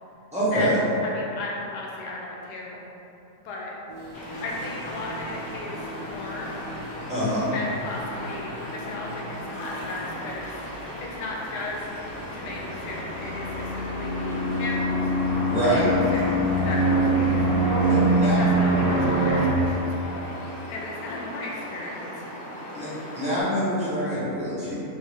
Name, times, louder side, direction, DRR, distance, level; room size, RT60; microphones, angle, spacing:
voice 1, 0.3-0.8 7.1-7.5 15.5-15.8 17.8-18.4 22.7-22.9 23.1-24.7, right 1 dB, 5° right, -11 dB, 0.7 m, -25 dB
voice 2, 1.0-2.8 3.4-3.7 4.4-6.6 7.5-10.5 11.0-12.0 12.3-15.0 15.6-16.3 16.6-17.4 18.3-20.3 20.7-22.7, left 2 dB, 90° left, -3 dB, 1.2 m, -36 dB
sound 1, 3.9-13.0, equal, 50° right, 0.5 m, -41 dB
sound 2, 4.1-23.4, equal, 55° left, 0.8 m, -38 dB
sound 3, 12.1-19.5, right 1 dB, 15° left, 0.9 m, -23 dB
2.8 x 2.7 x 3.1 m, 2.8 s
omnidirectional pair, 1.7 m